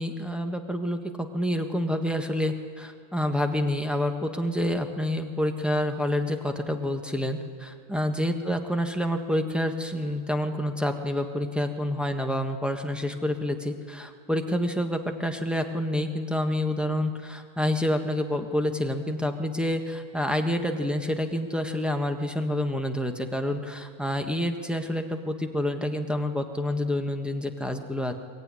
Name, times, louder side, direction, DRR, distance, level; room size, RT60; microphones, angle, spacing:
voice 1, 0.0-28.1, left 1 dB, ahead, 4 dB, 1.3 m, -28 dB
22.0 x 21.5 x 9.8 m, 2.3 s
omnidirectional pair, 1.5 m